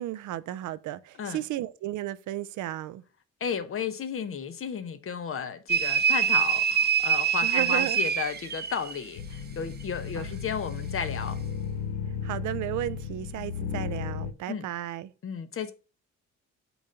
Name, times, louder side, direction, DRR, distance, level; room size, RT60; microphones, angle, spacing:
voice 1, 0.0-3.0 7.4-8.0 10.1-10.4 12.2-15.1, right 13 dB, 75° right, 0.5 m, -34 dB
voice 2, 3.4-11.4 14.5-14.7 15.2-15.7, left 7 dB, 45° left, 0.8 m, -33 dB
sound 1, 5.7-9.0, right 7 dB, 35° right, 0.7 m, -25 dB
sound 2, 9.2-14.3, left 7 dB, 85° left, 0.7 m, -34 dB
6.9 x 2.6 x 5.5 m
cardioid pair, 90°, 30 cm